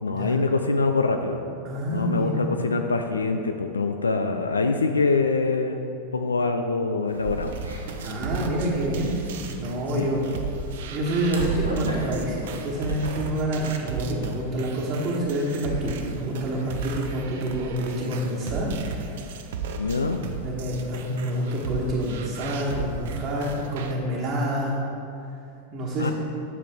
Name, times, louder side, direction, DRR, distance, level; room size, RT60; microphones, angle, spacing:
voice 1, 0.0-1.4 1.9-5.8 6.1-7.6 9.9-10.1 19.8-20.2 26.0-26.1, left 3 dB, 75° left, 6 dB, 0.3 m, -24 dB
voice 2, 1.6-2.5 8.0-9.2 9.6-10.2 10.9-18.7 20.4-24.8 25.7-26.1, right 1 dB, 35° right, -6 dB, 1.3 m, -27 dB
sound 1, 7.1-13.1, right 2 dB, 75° right, 1.0 m, -36 dB
sound 2, 7.2-23.9, right 4 dB, 55° right, 0.6 m, -35 dB
10.5 x 6.5 x 3.6 m, 2.7 s
figure-of-eight pair, 90°, 0 cm